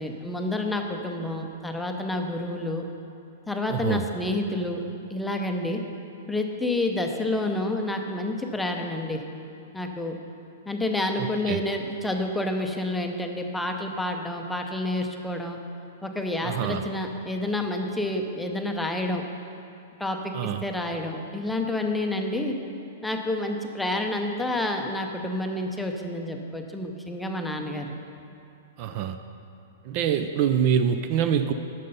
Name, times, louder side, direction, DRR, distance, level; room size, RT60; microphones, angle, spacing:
voice 1, 0.0-2.8 3.5-4.8 5.1-5.8 6.3-9.2 9.7-10.2 10.7-15.6 16.0-19.2 20.0-22.6 23.0-27.9, left 1 dB, 5° left, 3 dB, 0.6 m, -29 dB
voice 2, 3.7-4.1 11.2-11.6 16.4-16.9 20.3-20.6 28.8-29.2 29.8-31.5, right 8 dB, 40° right, 9 dB, 0.4 m, -25 dB
9.4 x 6.6 x 5.4 m, 2.6 s
hypercardioid pair, 150°, 0 cm